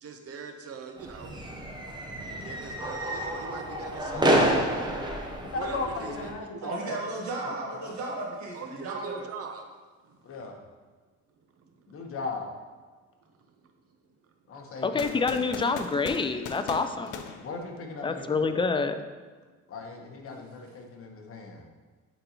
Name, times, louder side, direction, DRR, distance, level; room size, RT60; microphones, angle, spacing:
voice 1, 0.0-1.3 2.4-5.0 5.5-6.7 8.5-9.7 10.0-10.2 11.5-11.9 13.2-13.3, right 5 dB, 50° right, 5 dB, 0.8 m, -42 dB
sound 1, 1.0-6.3, right 1 dB, 15° right, 0.8 m, -29 dB
voice 2, 5.6-7.0 7.4-7.9 10.2-10.6 11.9-12.5 14.5-15.6 17.4-18.5 19.7-21.7, left 3 dB, 45° left, 2 dB, 1.1 m, -38 dB
voice 3, 6.6-9.1, right 2 dB, 65° right, -2 dB, 1.6 m, -34 dB
voice 4, 14.8-17.2 18.0-19.0, left 4 dB, 15° left, 9 dB, 0.4 m, -27 dB
sound 2, 15.0-18.2, left 6 dB, 85° left, 0.6 m, -40 dB
8.8 x 4.1 x 2.9 m, 1.4 s
cardioid pair, 105°, 30 cm